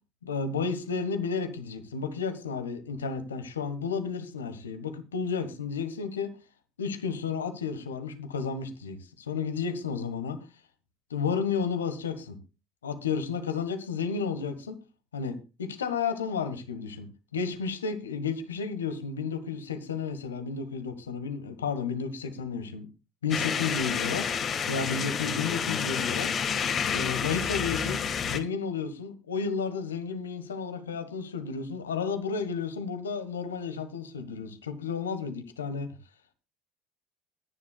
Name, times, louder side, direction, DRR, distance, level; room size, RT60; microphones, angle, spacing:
voice 1, 0.2-6.3 6.8-10.4 11.1-12.4 12.8-14.8 15.1-17.1 17.3-22.9 23.2-26.3 26.9-35.9, left 5 dB, 85° left, 10 dB, 1.5 m, -32 dB
sound 1, 23.3-28.4, left 7 dB, 45° left, 1.8 m, -29 dB
21.5 x 9.9 x 2.4 m, 0.29 s
figure-of-eight pair, 65°, 0 cm